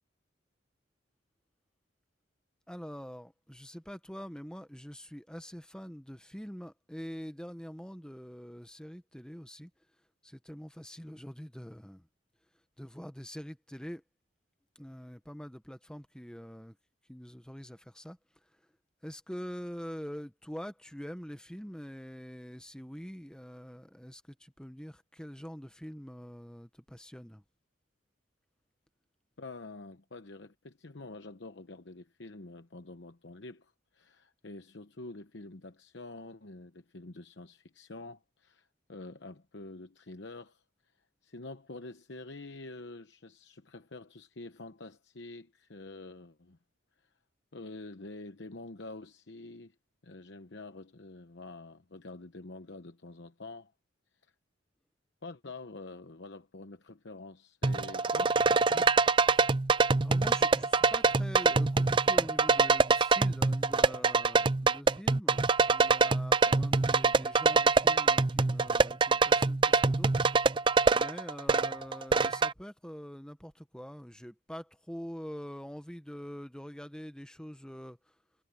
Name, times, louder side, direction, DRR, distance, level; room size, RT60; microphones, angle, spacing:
voice 1, 2.7-9.7 10.2-12.1 12.8-14.0 14.7-16.8 17.1-18.7 19.0-27.4 59.3-59.5 60.0-70.1 70.9-78.1, equal, 5° left, 1.1 m, -45 dB
voice 2, 29.4-40.6 41.2-46.6 47.0-47.1 47.5-49.7 50.0-53.7 55.2-58.9, left 2 dB, 65° left, 1.0 m, -47 dB
sound 1, 57.6-72.5, right 4 dB, 25° right, 0.4 m, -25 dB
head